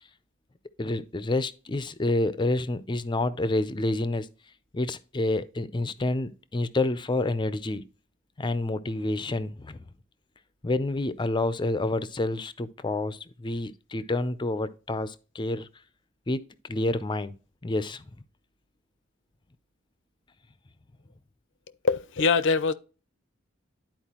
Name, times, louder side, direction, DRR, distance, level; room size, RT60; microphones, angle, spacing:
voice 1, 0.8-4.3 4.7-7.8 8.4-9.8 10.6-15.7 16.3-17.3 17.6-18.1, left 2 dB, 25° left, 0.5 m, -28 dB
voice 2, 21.8-22.7, left 5 dB, 65° left, 0.6 m, -23 dB
11.5 x 4.4 x 2.9 m
head